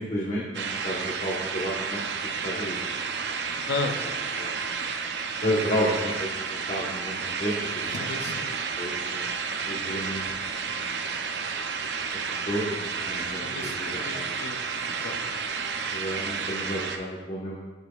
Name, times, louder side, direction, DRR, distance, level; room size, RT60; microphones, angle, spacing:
voice 1, 0.0-2.0 2.4-2.8 4.0-4.1 4.4-4.5 5.4-6.3 6.7-8.1 8.8-9.2 9.7-10.2 10.7-10.8 12.3-14.2 15.9-17.6, equal, 40° left, -6 dB, 1.0 m, -31 dB
sound 1, 0.5-17.0, right 5 dB, 70° right, 0.6 m, -31 dB
voice 2, 3.5-4.0 7.9-8.5 13.4-14.5 14.8-15.2, left 3 dB, 65° left, 6 dB, 0.6 m, -34 dB
8.0 x 6.8 x 2.4 m, 1.2 s
head